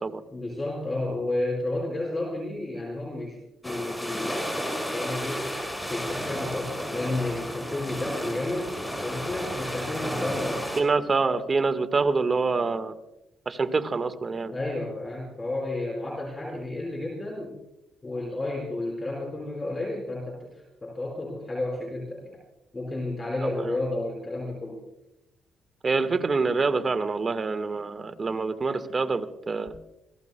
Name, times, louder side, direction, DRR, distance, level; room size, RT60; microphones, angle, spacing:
voice 1, 0.3-5.5 5.9-10.6 14.5-17.6 18.0-22.4 22.7-24.8, left 2 dB, 25° left, -1 dB, 4.7 m, -32 dB
sound 1, 3.6-10.8, equal, 5° left, 5.2 m, -32 dB
voice 2, 10.8-12.9 13.4-14.5 23.4-23.8 25.8-29.7, right 4 dB, 35° right, 9 dB, 1.4 m, -26 dB
27.5 x 17.5 x 2.2 m, 0.88 s
cardioid pair, 90°, 0 cm